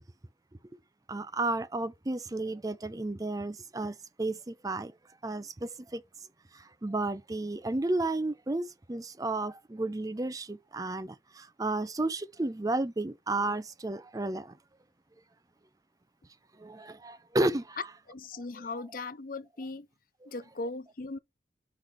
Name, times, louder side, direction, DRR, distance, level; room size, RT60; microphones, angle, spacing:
voice 1, 1.1-4.9 5.2-6.0 6.5-14.5 16.6-17.8 20.2-20.3, right 2 dB, 20° right, 0.5 m, -32 dB
voice 2, 18.1-19.9 20.3-21.2, left 3 dB, 50° left, 0.6 m, -38 dB
4.9 x 4.1 x 5.5 m
head